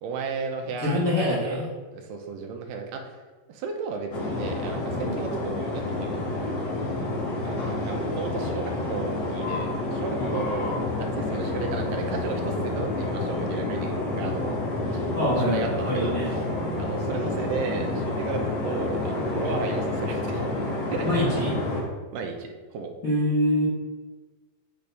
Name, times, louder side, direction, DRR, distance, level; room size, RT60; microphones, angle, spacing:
voice 1, 0.0-1.6 1.9-3.1 3.5-6.3 7.4-14.6 14.9-15.0 15.5-16.5 16.8-20.5 20.9-21.1 22.1-22.9, right 5 dB, 80° right, 3 dB, 2.1 m, -34 dB
voice 2, 0.8-1.7 4.9-5.1 10.1-10.3 15.1-16.3 21.0-21.5 23.0-23.7, left 1 dB, 80° left, -10 dB, 0.7 m, -25 dB
sound 1, 4.1-21.8, left 2 dB, 60° left, 1.8 m, -29 dB
8.5 x 4.0 x 3.4 m, 1.3 s
omnidirectional pair, 4.2 m